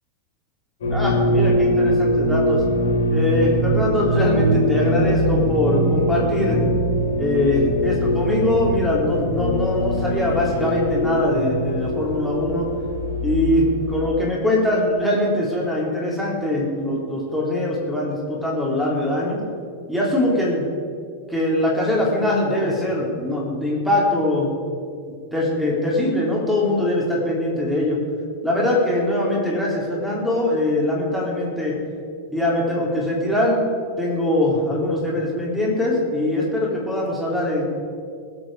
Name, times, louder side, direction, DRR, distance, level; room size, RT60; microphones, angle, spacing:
sound 1, 0.8-14.1, equal, 60° left, 3.3 m, -22 dB
voice 1, 0.9-2.6 3.1-6.6 7.2-12.7 13.2-19.4 19.9-20.7 21.3-24.5 25.3-28.0 28.4-31.8 32.3-33.6 34.0-37.6, left 1 dB, ahead, -4 dB, 4.0 m, -22 dB
20.5 x 8.1 x 5.1 m, 2.3 s
figure-of-eight pair, 90°, 0 cm